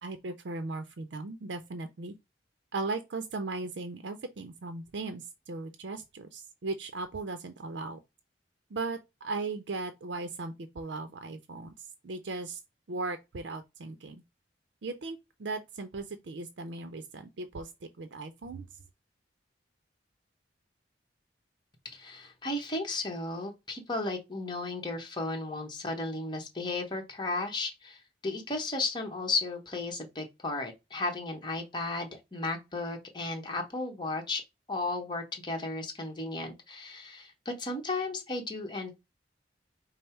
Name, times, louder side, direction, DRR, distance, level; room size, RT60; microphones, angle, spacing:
voice 1, 0.0-2.1 2.7-8.0 8.7-12.6 12.9-14.2 14.8-18.7, right 3 dB, 75° right, 0.5 m, -37 dB
voice 2, 21.8-34.4 34.7-38.9, left 2 dB, 25° left, 1.1 m, -34 dB
5.3 x 2.0 x 4.4 m
head